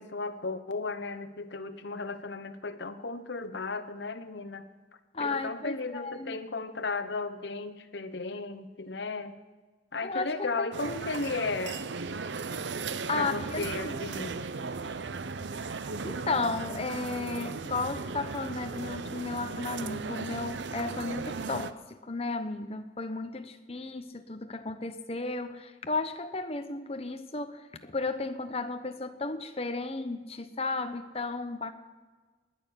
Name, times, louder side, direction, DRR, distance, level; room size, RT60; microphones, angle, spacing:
voice 1, 0.0-4.7 5.2-9.4 9.9-11.8 13.1-14.4, left 3 dB, 70° left, 9 dB, 1.0 m, -35 dB
voice 2, 5.1-6.4 10.0-10.7 13.1-14.0 16.0-31.7, left 3 dB, 35° left, 9 dB, 0.9 m, -34 dB
sound 1, 10.7-21.7, right 4 dB, 75° right, 0.6 m, -36 dB
20.0 x 6.7 x 9.8 m, 1.3 s
head